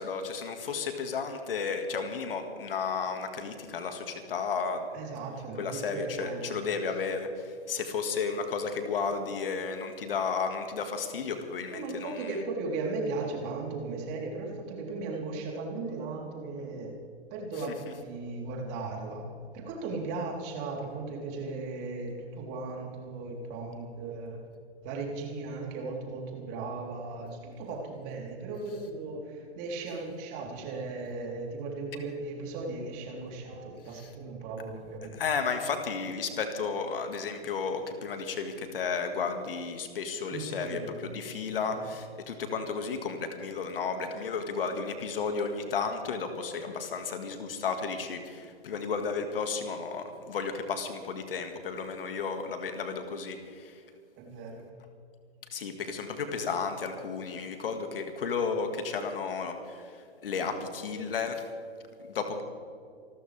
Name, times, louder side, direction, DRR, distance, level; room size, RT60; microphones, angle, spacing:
voice 1, 0.0-4.9 5.6-12.3 17.6-17.7 33.9-34.1 35.1-53.8 55.5-61.5 62.0-62.4, left 5 dB, 60° left, 6 dB, 2.1 m, -33 dB
voice 2, 4.9-6.6 11.7-16.9 17.3-19.3 19.5-24.4 24.8-35.1 40.3-40.9 41.7-41.9 54.2-54.7, right 3 dB, 30° right, -1 dB, 3.9 m, -37 dB
28.0 x 13.5 x 3.5 m, 2.4 s
figure-of-eight pair, 120°, 33 cm